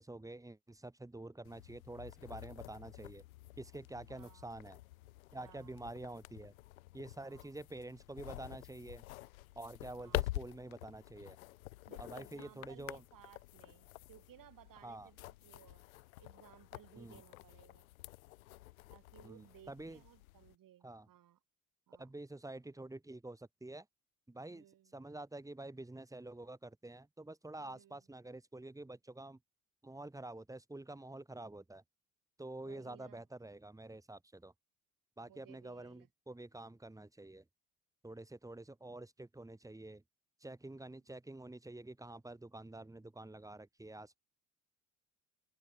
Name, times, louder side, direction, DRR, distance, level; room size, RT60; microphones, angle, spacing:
voice 1, 0.0-3.2 3.6-4.8 5.3-6.5 6.9-9.0 9.6-11.4 12.0-13.0 14.8-15.1 17.0-17.2 19.2-20.0 20.8-21.1 22.0-23.9 24.3-24.6 24.9-29.4 29.8-31.8 32.4-34.5 35.2-37.4 38.0-40.0 40.4-44.2, right 2 dB, 10° right, 1.9 m, -48 dB
sound 1, 1.4-20.6, left 18 dB, 75° left, 1.3 m, -48 dB
voice 2, 4.1-4.5 5.3-5.8 7.2-7.6 9.9-10.3 11.9-15.8 16.2-17.9 18.9-21.4 21.9-22.1 24.5-25.0 27.6-28.1 32.6-33.3 35.3-36.1, right 12 dB, 50° right, 4.8 m, -61 dB
figure-of-eight pair, 55°, 42 cm